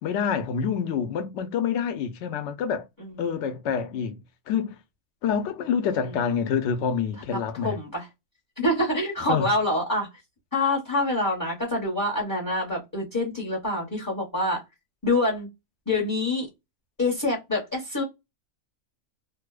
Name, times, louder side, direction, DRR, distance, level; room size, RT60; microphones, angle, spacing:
voice 1, 0.0-2.9 3.2-4.2 4.5-4.8 5.2-7.8 9.3-9.5, left 7 dB, 70° left, 0.8 m, -27 dB
voice 2, 3.0-3.4 6.0-6.2 7.6-8.1 8.6-10.1 10.5-14.6 15.0-15.5 15.9-16.5 17.0-18.0, left 2 dB, 20° left, 0.7 m, -26 dB
2.7 x 2.0 x 2.3 m
omnidirectional pair, 1.4 m